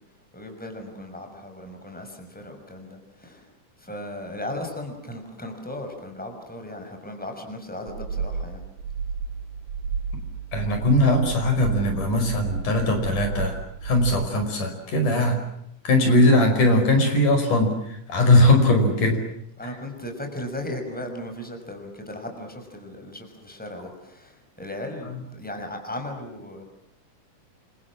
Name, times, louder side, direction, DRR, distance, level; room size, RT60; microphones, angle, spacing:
voice 1, 0.3-3.5 3.8-8.6 19.6-26.6, left 1 dB, ahead, 4 dB, 5.8 m, -36 dB
sound 1, 7.9-14.3, right 5 dB, 80° right, 3.2 m, -32 dB
voice 2, 10.5-15.4 15.8-19.2, left 1 dB, 70° left, 5 dB, 6.9 m, -20 dB
28.5 x 25.5 x 7.5 m, 0.75 s
omnidirectional pair, 3.8 m